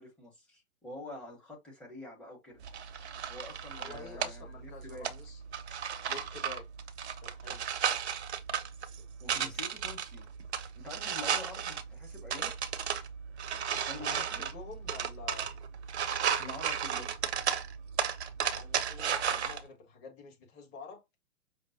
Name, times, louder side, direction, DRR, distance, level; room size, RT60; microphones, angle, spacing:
voice 1, 0.0-2.6 3.3-5.1 9.2-10.3 10.7-12.6 13.7-14.4 16.4-17.2, left 1 dB, ahead, 0.8 m, -47 dB
sound 1, 2.6-19.6, right 8 dB, 50° right, 0.6 m, -35 dB
voice 2, 3.7-5.4 6.1-6.7 7.2-7.6 9.0-9.5 14.0-15.5 18.4-21.0, left 4 dB, 25° left, 1.4 m, -48 dB
5.2 x 2.0 x 2.7 m
figure-of-eight pair, 120°, 43 cm